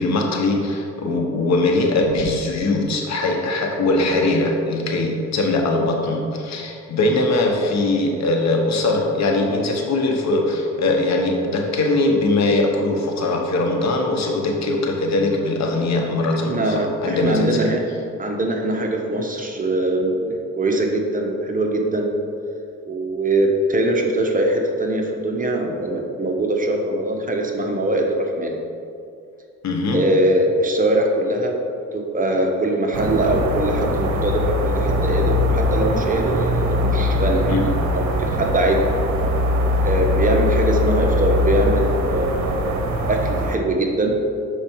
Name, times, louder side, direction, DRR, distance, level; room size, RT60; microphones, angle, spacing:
voice 1, 0.0-17.7 29.6-30.0 37.5-37.7, left 2 dB, 65° left, 1 dB, 1.1 m, -21 dB
voice 2, 16.5-17.8 18.2-22.1 22.9-28.6 29.9-31.6 31.9-38.9 39.8-44.1, right 1 dB, 25° right, 1 dB, 1.0 m, -22 dB
sound 1, 32.9-43.6, left 1 dB, 70° right, 0.9 m, -21 dB
6.6 x 5.0 x 4.5 m, 2.4 s
cardioid pair, 90°, 30 cm